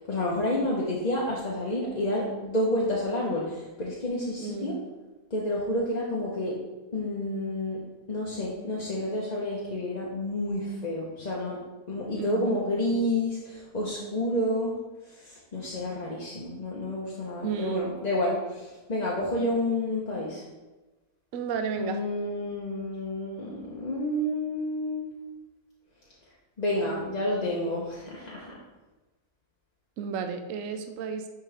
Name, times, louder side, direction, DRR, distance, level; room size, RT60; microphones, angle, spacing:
voice 1, 0.1-4.7 5.3-6.6 6.9-7.8 8.1-11.6 11.9-14.7 15.1-20.4 21.8-25.1 26.6-28.6, left 1 dB, 30° left, -5 dB, 0.9 m, -29 dB
voice 2, 4.4-4.8 12.1-12.6 17.4-17.9 21.3-22.0 30.0-31.3, right 6 dB, 60° right, 6 dB, 0.9 m, -33 dB
10.0 x 4.6 x 3.5 m, 1.1 s
omnidirectional pair, 1.8 m